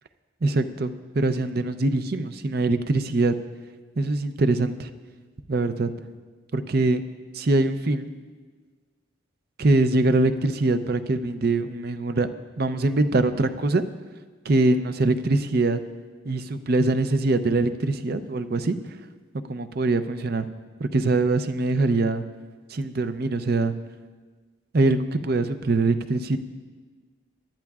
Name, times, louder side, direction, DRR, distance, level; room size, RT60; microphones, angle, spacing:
voice 1, 0.4-3.3 4.0-4.9 5.5-5.9 6.5-7.0 7.3-8.1 9.6-12.3 12.6-13.8 14.5-15.8 16.2-18.8 19.5-20.5 20.8-22.2 22.7-23.7 24.7-26.4, right 2 dB, 50° right, 10 dB, 0.5 m, -23 dB
23.5 x 12.0 x 2.4 m, 1.4 s
head